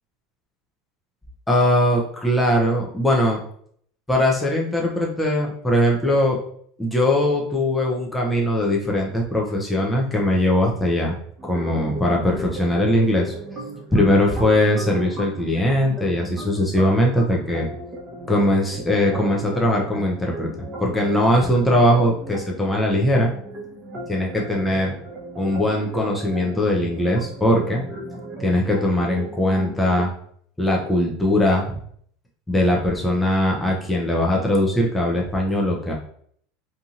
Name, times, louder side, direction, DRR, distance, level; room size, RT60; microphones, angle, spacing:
voice 1, 1.5-3.4 4.1-6.4 6.8-11.1 11.4-13.3 13.9-17.7 18.3-20.5 20.8-23.3 24.1-24.9 25.4-27.8 28.4-30.1 30.6-31.8 32.5-35.9, left 1 dB, 10° left, -2 dB, 0.6 m, -20 dB
sound 1, 11.4-30.0, right 1 dB, 30° right, 0.8 m, -36 dB
2.8 x 2.6 x 2.4 m, 0.62 s
hypercardioid pair, 90°, 0 cm